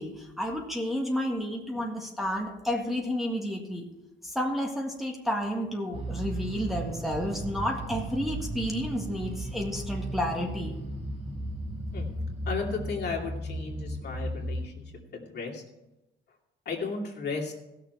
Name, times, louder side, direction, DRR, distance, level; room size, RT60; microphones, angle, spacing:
voice 1, 0.0-3.9 4.2-10.8, equal, ahead, -1 dB, 1.7 m, -31 dB
sound 1, 5.9-14.7, right 1 dB, 30° right, 2.1 m, -35 dB
voice 2, 12.4-14.8 15.1-15.6 16.6-17.5, left 4 dB, 55° left, -1 dB, 2.6 m, -34 dB
16.0 x 6.7 x 4.6 m, 0.94 s
cardioid pair, 90°, 20 cm